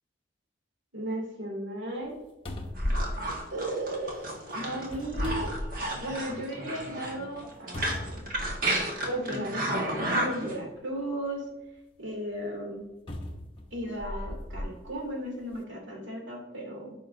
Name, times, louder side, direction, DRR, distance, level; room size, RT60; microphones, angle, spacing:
voice 1, 0.9-2.1 3.5-4.3 4.5-5.5 6.0-8.3 9.1-11.4 12.0-12.9 13.7-16.9, right 1 dB, 85° right, -1 dB, 2.5 m, -35 dB
sound 1, 2.0-2.1 2.4-4.1 4.8-6.2 6.7-6.8 7.7-8.9 9.8-9.9 13.1-14.7 15.4-15.5, left 1 dB, 30° left, 0.8 m, -35 dB
sound 2, 2.8-10.6, right 1 dB, 50° right, 1.4 m, -32 dB
14.0 x 5.7 x 2.6 m, 1.0 s
head